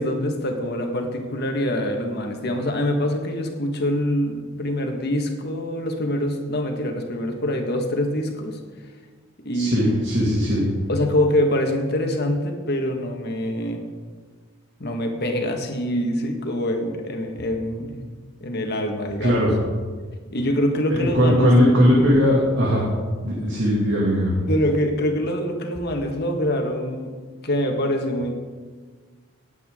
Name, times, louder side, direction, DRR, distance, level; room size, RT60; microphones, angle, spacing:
voice 1, 0.0-8.6 9.4-10.0 10.9-13.8 14.8-18.0 18.4-19.4 20.3-21.5 24.5-27.1 27.4-28.3, left 1 dB, 55° left, 4 dB, 1.5 m, -24 dB
voice 2, 9.5-10.6 19.2-19.6 20.9-22.8 23.2-24.3, equal, 60° right, -4 dB, 2.3 m, -19 dB
19.0 x 8.4 x 3.7 m, 1.5 s
head